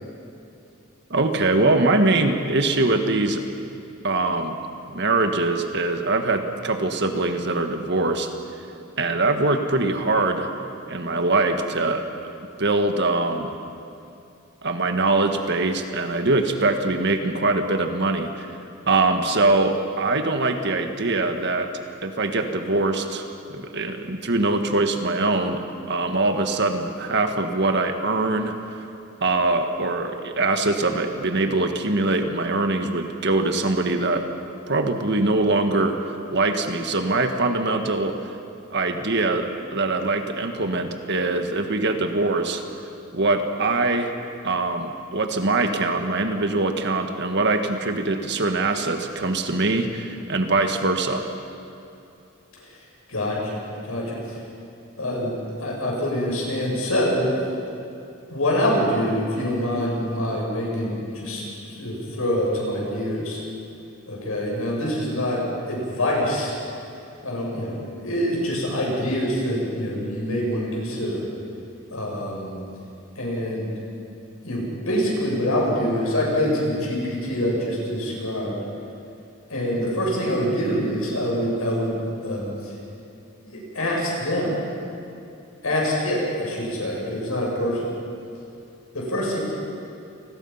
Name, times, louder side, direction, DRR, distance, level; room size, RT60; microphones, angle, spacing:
voice 1, 1.1-3.4 4.0-4.6 4.9-8.3 9.0-10.5 10.9-12.3 12.6-13.5 14.6-18.5 18.9-21.7 22.0-25.6 25.9-28.9 29.2-34.2 34.7-38.3 38.7-42.6 43.1-44.1 44.4-51.3, right 2 dB, 55° right, 6 dB, 1.7 m, -23 dB
voice 2, 53.1-54.4 55.0-57.3 58.3-63.4 64.1-66.5 67.2-71.2 71.9-72.5 73.2-73.7 74.4-78.6 79.5-82.7 83.4-84.6 85.6-87.9 88.9-89.4, equal, 80° left, -3 dB, 7.4 m, -25 dB
28.5 x 20.5 x 5.8 m, 2.7 s
head